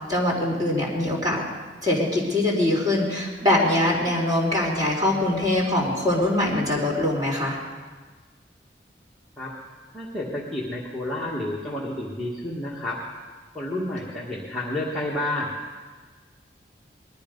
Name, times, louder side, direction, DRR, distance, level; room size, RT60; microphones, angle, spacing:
voice 1, 0.1-1.4 1.8-7.6, left 1 dB, 25° right, -2 dB, 3.6 m, -23 dB
voice 2, 9.9-13.0 13.5-15.5, left 1 dB, ahead, -7 dB, 1.6 m, -30 dB
20.5 x 13.0 x 5.3 m, 1.4 s
head